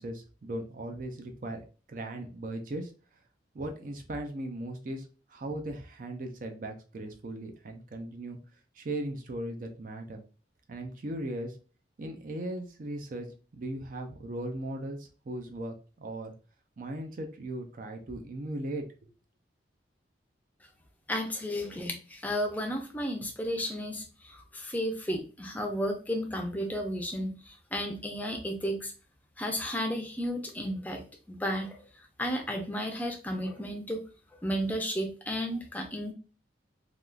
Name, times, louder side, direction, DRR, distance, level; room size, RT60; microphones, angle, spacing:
voice 1, 0.0-2.9 3.5-8.4 8.7-10.2 10.7-11.6 12.0-13.3 13.5-16.3 16.8-19.1, right 1 dB, 45° right, 4 dB, 0.4 m, -38 dB
voice 2, 21.1-28.9 29.4-31.8 32.2-34.0 34.4-36.1, equal, 10° left, 3 dB, 0.5 m, -33 dB
3.4 x 2.4 x 2.3 m, 0.36 s
head